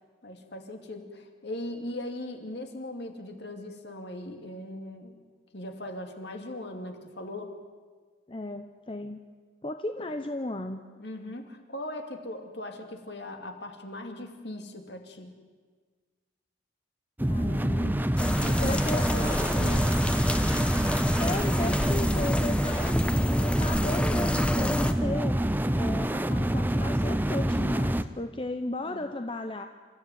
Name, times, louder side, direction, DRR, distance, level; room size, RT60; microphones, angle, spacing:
voice 1, 0.2-5.2 5.5-7.6 11.0-15.4 18.3-20.0 21.6-21.7 28.8-29.1, left 1 dB, 55° left, 4 dB, 2.6 m, -39 dB
voice 2, 8.3-9.2 9.6-10.8 17.3-18.1 18.6-19.7 21.2-25.4 25.7-29.7, left 1 dB, 25° left, 6 dB, 0.8 m, -35 dB
sound 1, 17.2-28.0, right 1 dB, 10° right, 0.6 m, -26 dB
sound 2, 18.2-24.9, left 1 dB, 5° left, 1.0 m, -29 dB
27.5 x 14.5 x 9.4 m, 1.5 s
head